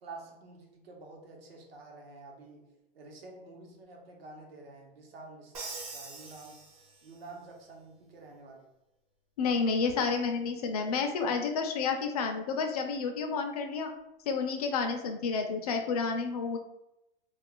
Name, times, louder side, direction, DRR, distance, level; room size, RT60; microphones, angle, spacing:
voice 1, 0.0-2.7 2.9-5.5 5.9-6.6 7.0-8.7, right 3 dB, 85° right, 1 dB, 1.0 m, -49 dB
Crash cymbal, 5.5-7.3, right 3 dB, 40° right, 0.7 m, -43 dB
voice 2, 9.4-13.9 14.3-16.6, left 5 dB, 45° left, 5 dB, 0.4 m, -30 dB
2.4 x 2.3 x 3.7 m, 0.89 s
supercardioid pair, 165°, 29 cm